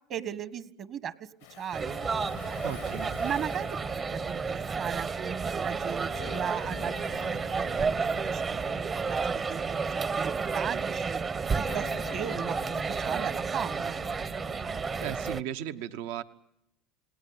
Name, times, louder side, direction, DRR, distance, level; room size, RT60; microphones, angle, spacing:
voice 1, 0.1-1.1 1.6-2.1 3.2-3.7 4.1-7.1 7.5-8.0 8.3-11.2 11.7-14.0, right 8 dB, 50° right, 15 dB, 1.4 m, -37 dB
Waves surf, 1.4-7.3, left 14 dB, 85° left, 1.2 m, -51 dB
sound 1, 1.7-15.4, right 5 dB, 30° right, 0.9 m, -31 dB
sound 2, 1.9-15.3, left 14 dB, 65° left, 0.9 m, -48 dB
voice 2, 2.6-3.1 15.0-16.2, right 10 dB, 75° right, 9 dB, 1.2 m, -36 dB
29.0 x 18.5 x 8.8 m, 0.84 s
supercardioid pair, 95°, 0 cm